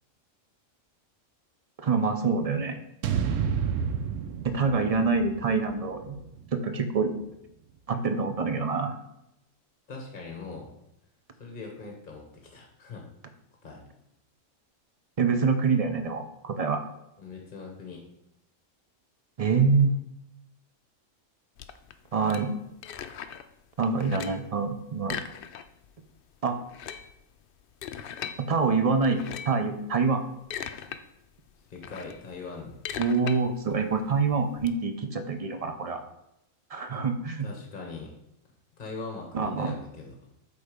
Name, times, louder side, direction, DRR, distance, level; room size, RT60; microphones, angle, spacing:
voice 1, 1.8-2.8 4.4-6.2 6.5-7.1 7.9-8.9 15.2-16.8 19.4-19.9 22.1-22.5 23.8-25.2 26.4-26.6 28.4-30.2 33.0-36.0 36.7-37.5 39.3-39.7, right 4 dB, 40° right, 7 dB, 0.5 m, -26 dB
sound 1, 3.0-7.3, right 7 dB, 75° right, 1.0 m, -31 dB
voice 2, 9.9-10.7 11.4-13.1 13.6-13.9 17.2-18.0 31.7-32.8 37.4-38.1 38.8-40.3, left 4 dB, 40° left, 1 dB, 1.2 m, -41 dB
sound 2, 21.6-23.5 23.8-24.5 25.0-25.9 26.2-26.3 26.6-28.4 29.0-29.6 30.2-31.0 31.4-34.7, left 8 dB, 65° left, 0.6 m, -39 dB
8.1 x 3.6 x 5.0 m, 0.84 s
omnidirectional pair, 1.3 m